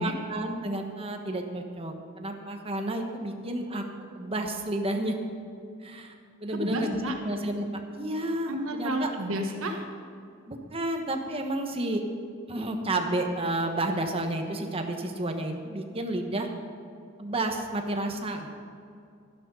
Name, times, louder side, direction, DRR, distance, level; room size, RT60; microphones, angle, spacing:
voice 1, 0.0-3.8 4.1-5.2 5.8-6.1 6.4-7.7 7.9-9.1 10.5-12.0 12.5-16.5 17.2-18.5, right 1 dB, 30° right, 4 dB, 1.3 m, -31 dB
voice 2, 6.5-7.1 8.5-9.8, equal, 80° right, 3 dB, 1.4 m, -31 dB
13.0 x 11.0 x 5.5 m, 2.5 s
head